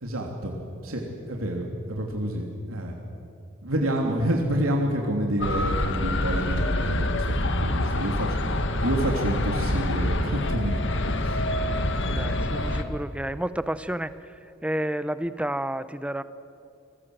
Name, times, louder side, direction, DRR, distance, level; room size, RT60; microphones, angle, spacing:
voice 1, 0.0-0.5 0.8-2.9 3.6-11.3, right 1 dB, 90° right, 0 dB, 3.0 m, -28 dB
sound 1, 5.4-12.8, left 1 dB, 60° left, 1.7 m, -26 dB
voice 2, 12.1-16.2, right 1 dB, 5° right, 13 dB, 0.7 m, -31 dB
27.5 x 21.5 x 7.9 m, 2.5 s
head